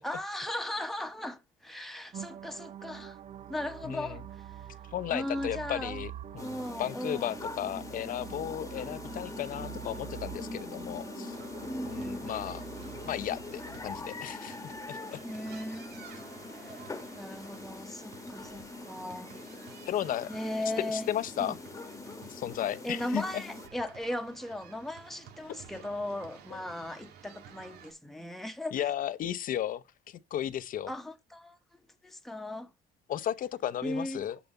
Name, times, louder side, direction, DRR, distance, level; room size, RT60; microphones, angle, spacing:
voice 1, 0.0-3.2 3.5-4.7 5.1-6.0 6.4-7.3 8.5-8.6 11.6-12.4 15.2-16.0 16.6-16.8 17.1-19.4 20.3-21.1 21.4-21.6 22.8-28.9 30.9-32.7 33.8-34.2, left 1 dB, ahead, 1.1 m, -37 dB
sound 1, 2.1-14.1, right 10 dB, 45° right, 0.6 m, -46 dB
voice 2, 3.8-4.2 4.9-11.4 11.8-12.6 13.0-15.2 19.9-20.3 20.8-21.6 22.3-23.4 25.5-25.6 26.5-26.6 28.7-30.9 33.1-34.4, left 11 dB, 55° left, 0.7 m, -34 dB
sound 2, 6.4-23.7, left 3 dB, 20° left, 1.2 m, -43 dB
sound 3, 11.3-27.9, right 8 dB, 75° right, 2.1 m, -53 dB
7.0 x 7.0 x 4.1 m
cardioid pair, 110°, 17 cm